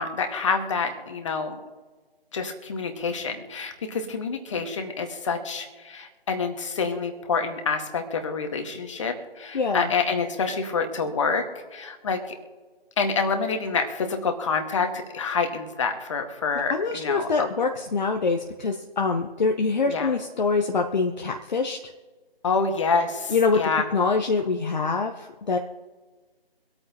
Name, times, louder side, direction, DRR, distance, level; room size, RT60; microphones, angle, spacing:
voice 1, 0.0-1.6 2.3-11.4 11.7-12.3 13.0-17.5 19.9-20.1 22.4-23.9, left 4 dB, 30° left, 5 dB, 1.7 m, -27 dB
voice 2, 9.5-9.9 16.7-21.8 23.3-23.6 23.9-25.6, left 4 dB, 45° left, 3 dB, 1.0 m, -24 dB
25.0 x 8.8 x 2.9 m, 1.3 s
figure-of-eight pair, 155°, 30 cm